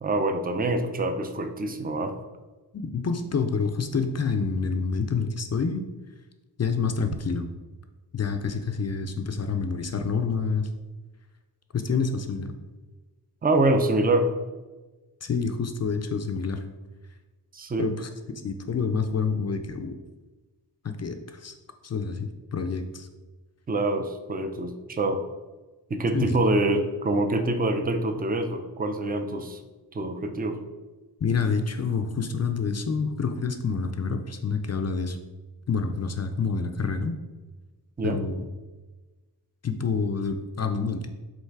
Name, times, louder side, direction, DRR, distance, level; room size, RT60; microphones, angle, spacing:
voice 1, 0.0-2.1 13.4-14.3 17.5-17.9 23.7-25.2 25.9-29.6 29.9-30.6 38.0-38.2, right 2 dB, 20° right, 7 dB, 0.4 m, -25 dB
voice 2, 2.7-5.8 6.6-7.5 8.1-10.7 11.7-12.5 15.2-16.6 17.8-18.1 18.4-20.0 20.8-21.5 21.8-23.1 26.1-26.4 31.2-35.2 35.7-37.2 38.0-38.4 39.6-41.1, left 5 dB, 40° left, 6 dB, 0.4 m, -28 dB
5.6 x 3.9 x 4.6 m, 1.2 s
wide cardioid pair, 165°, 41 cm